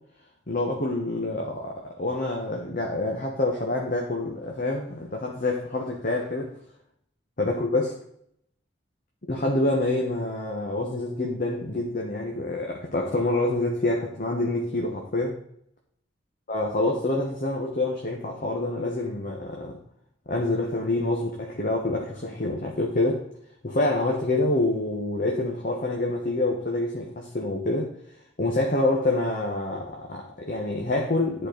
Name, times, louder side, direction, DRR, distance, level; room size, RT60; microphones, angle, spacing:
voice 1, 0.5-6.5 7.4-7.9 9.3-15.4 16.5-19.8 20.3-23.2 23.6-27.9 28.4-31.5, left 2 dB, 50° left, 0 dB, 1.2 m, -27 dB
10.5 x 4.4 x 5.1 m, 0.70 s
head